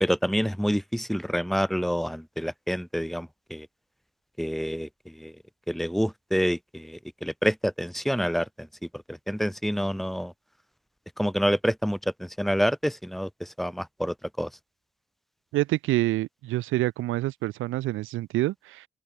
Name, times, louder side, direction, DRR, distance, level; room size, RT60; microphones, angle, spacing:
voice 1, 0.0-3.7 4.4-5.4 5.7-8.7 8.9-10.3 11.2-14.5, equal, ahead, 1.6 m, -28 dB
voice 2, 15.5-18.9, right 17 dB, 85° right, 0.9 m, -27 dB
open air
cardioid pair, 90°, 20 cm